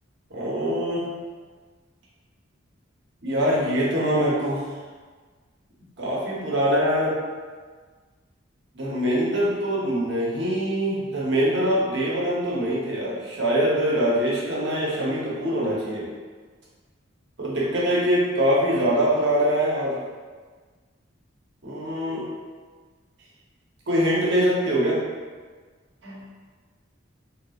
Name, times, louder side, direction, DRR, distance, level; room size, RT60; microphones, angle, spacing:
voice 1, 0.3-1.1 3.2-4.7 6.0-7.2 8.7-16.1 17.4-20.0 21.6-22.2 23.9-25.0 26.0-26.2, equal, 60° right, -6 dB, 0.9 m, -23 dB
3.5 x 2.8 x 2.4 m, 1.5 s
head